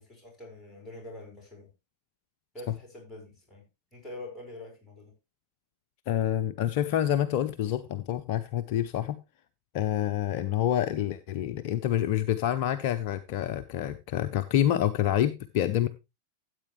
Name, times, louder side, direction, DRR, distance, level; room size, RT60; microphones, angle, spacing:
voice 1, 0.0-1.7 2.5-3.6 3.9-5.1, left 2 dB, 5° left, 5.1 m, -45 dB
voice 2, 6.1-9.2 9.7-15.9, left 11 dB, 45° left, 0.6 m, -27 dB
13.5 x 8.3 x 3.1 m
figure-of-eight pair, 90°, 0 cm